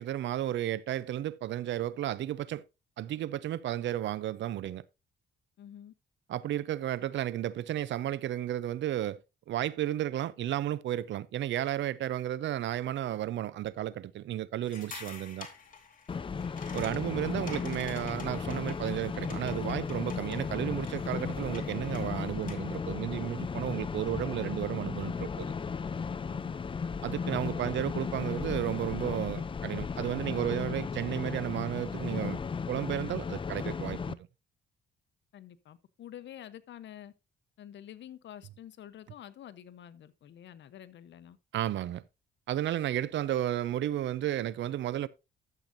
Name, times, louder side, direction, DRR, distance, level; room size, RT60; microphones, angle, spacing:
voice 1, 0.0-2.6 3.0-4.8 6.3-9.2 9.5-15.5 16.7-25.5 27.0-32.4 32.7-34.2 41.5-42.0 42.5-45.1, right 12 dB, 65° right, 0.6 m, -33 dB
voice 2, 5.6-5.9 26.3-26.8 35.3-37.1 37.6-41.4, left 10 dB, 65° left, 0.9 m, -48 dB
sound 1, 14.6-22.8, left 6 dB, 45° left, 2.6 m, -49 dB
sound 2, 16.1-34.1, left 5 dB, 25° left, 0.5 m, -35 dB
12.0 x 7.7 x 2.6 m
cardioid pair, 90°, 20 cm